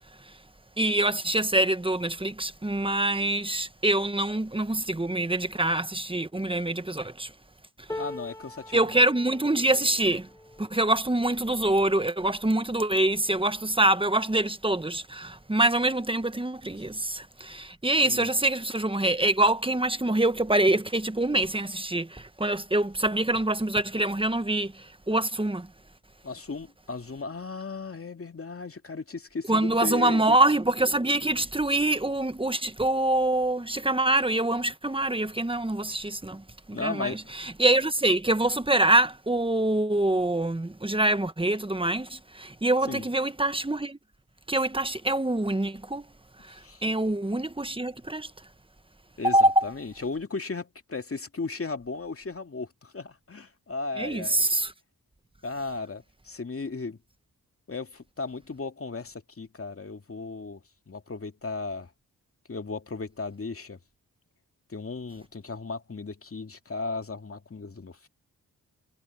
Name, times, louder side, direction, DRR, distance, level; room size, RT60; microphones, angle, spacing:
voice 1, 0.8-7.3 7.8-8.0 8.7-10.3 10.6-25.7 29.5-44.0 44.5-46.1 46.4-48.3 49.2-49.7 54.0-54.7, right 1 dB, 15° right, 1.4 m, -25 dB
sound 1, 7.9-14.0 14.6-14.8 15.1-15.9 16.8-16.9, left 2 dB, 10° left, 1.2 m, -44 dB
voice 2, 8.0-8.9 18.0-18.3 26.2-30.4 36.7-37.2 42.9-43.1 46.5-46.8 49.2-54.4 55.4-57.0 57.7-61.9 62.5-63.8 64.7-68.1, left 3 dB, 40° left, 2.4 m, -36 dB
supercardioid pair, 45°, 35 cm